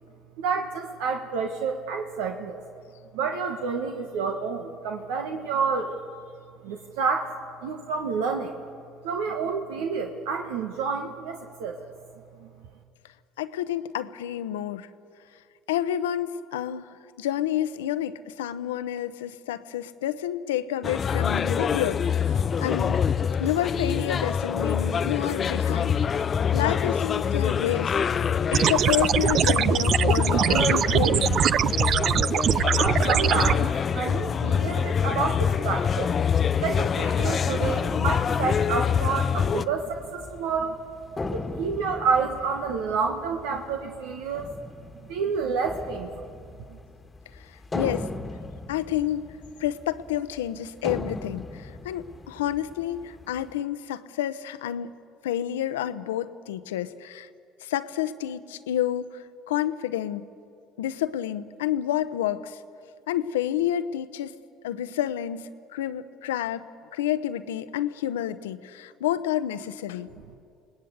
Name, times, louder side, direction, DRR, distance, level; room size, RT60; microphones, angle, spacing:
voice 1, 0.4-2.6 3.1-6.0 6.6-7.3 7.6-8.6 9.0-11.9 12.4-12.5 32.8-36.1 36.6-40.8 41.2-44.5 45.1-46.3 46.7-46.8, right 5 dB, 75° right, 4 dB, 1.4 m, -29 dB
voice 2, 13.4-14.9 15.7-23.0 23.4-26.0 26.5-28.0 28.5-31.4 47.3-48.1 48.7-49.2 49.6-54.9 55.2-57.3 57.6-60.2 60.8-62.6 63.1-64.3 64.6-66.7 66.9-70.1, left 11 dB, 85° left, 13 dB, 0.8 m, -29 dB
sound 1, 20.8-39.6, left 7 dB, 40° left, 0.6 m, -25 dB
sound 2, 28.5-33.5, right 9 dB, 55° right, 0.5 m, -22 dB
sound 3, 34.2-53.6, left 2 dB, 20° left, 1.6 m, -40 dB
28.5 x 19.0 x 8.2 m, 2.4 s
hypercardioid pair, 65°, 0 cm